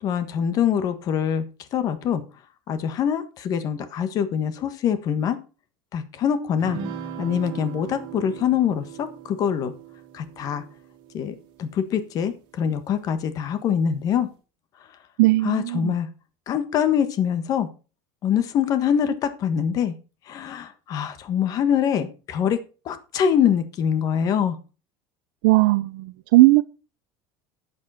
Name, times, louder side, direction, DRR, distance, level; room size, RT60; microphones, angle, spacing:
voice 1, 0.0-1.4 1.7-2.2 2.7-5.4 5.9-6.8 7.2-9.7 10.1-10.6 11.1-14.3 15.4-16.1 16.5-17.7 18.2-19.9 20.3-22.6 22.8-24.6, left 8 dB, 35° left, 1.4 m, -24 dB
sound 1, 6.6-12.3, right 7 dB, 50° right, 2.6 m, -39 dB
voice 2, 15.2-15.9 25.4-26.6, right 20 dB, 75° right, 0.7 m, -18 dB
11.5 x 8.6 x 4.2 m
cardioid pair, 165°, 10 cm